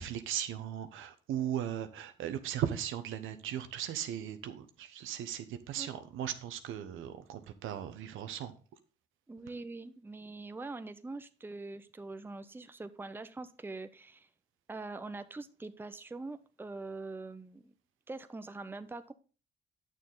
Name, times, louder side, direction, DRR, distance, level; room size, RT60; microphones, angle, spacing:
voice 1, 0.0-8.5, right 10 dB, 85° right, 1.0 m, -37 dB
voice 2, 9.3-14.3 14.7-17.7 18.1-19.1, right 3 dB, 10° right, 0.6 m, -43 dB
9.0 x 6.7 x 3.8 m
cardioid pair, 90°, 20 cm